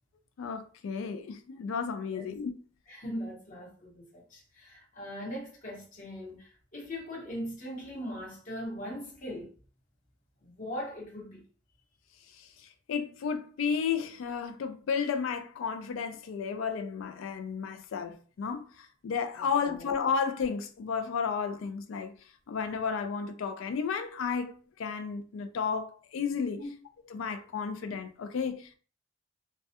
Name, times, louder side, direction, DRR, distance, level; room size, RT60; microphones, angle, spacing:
voice 1, 0.4-2.5 12.3-22.2 22.5-26.6 27.1-28.8, left 6 dB, 75° left, 0.3 m, -33 dB
voice 2, 2.9-9.5 10.4-11.4 19.4-19.9 26.6-26.7, equal, 40° left, 0.9 m, -40 dB
2.3 x 2.1 x 2.7 m
head